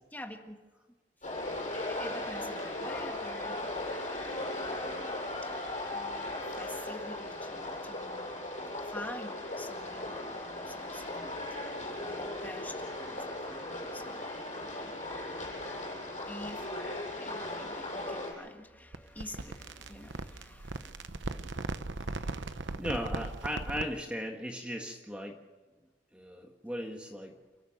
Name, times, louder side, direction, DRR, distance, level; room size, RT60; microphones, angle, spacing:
voice 1, 0.1-0.6 1.7-5.0 5.4-5.6 5.9-8.5 8.8-11.7 12.0-14.3 14.6-14.9 16.3-21.5, left 1 dB, 10° left, 3 dB, 1.7 m, -48 dB
sound 1, 1.2-18.3, left 1 dB, 35° left, 7.6 m, -37 dB
sound 2, 18.9-24.0, right 2 dB, 75° right, 0.9 m, -38 dB
voice 2, 22.1-22.5 22.8-25.4 26.1-27.4, equal, 5° right, 2 dB, 1.6 m, -37 dB
29.5 x 13.5 x 6.6 m, 1.3 s
head